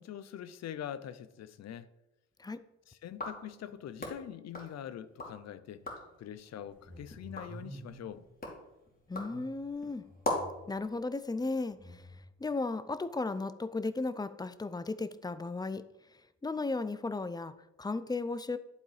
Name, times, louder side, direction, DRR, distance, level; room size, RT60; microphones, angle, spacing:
voice 1, 0.0-1.9 2.9-5.8 6.2-8.2, left 10 dB, 60° left, 0.7 m, -44 dB
sound 1, 3.1-5.4 5.7-6.2 6.7-10.7, left 2 dB, 30° left, 2.6 m, -41 dB
sound 2, 6.5-8.2 9.2-10.9 11.7-12.2, right 1 dB, 25° right, 1.9 m, -50 dB
voice 2, 9.1-10.0 10.7-12.0 12.4-15.8 16.4-18.6, left 3 dB, 15° left, 0.5 m, -35 dB
11.0 x 3.9 x 4.9 m
cardioid pair, 90°, 30 cm